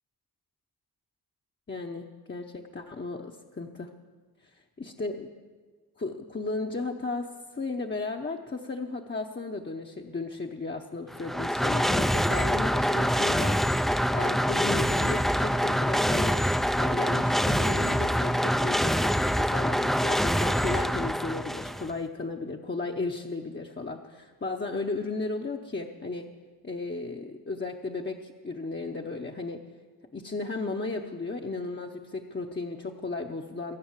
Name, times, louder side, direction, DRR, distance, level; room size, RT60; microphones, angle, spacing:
voice 1, 1.7-3.9 4.8-5.3 6.0-16.4 16.8-26.3 26.6-29.6 30.1-33.8, left 3 dB, 25° left, 1 dB, 0.9 m, -35 dB
sound 1, 11.1-21.9, equal, ahead, 0.4 m, -25 dB
23.0 x 8.7 x 7.3 m, 1.5 s
wide cardioid pair, 95°, 39 cm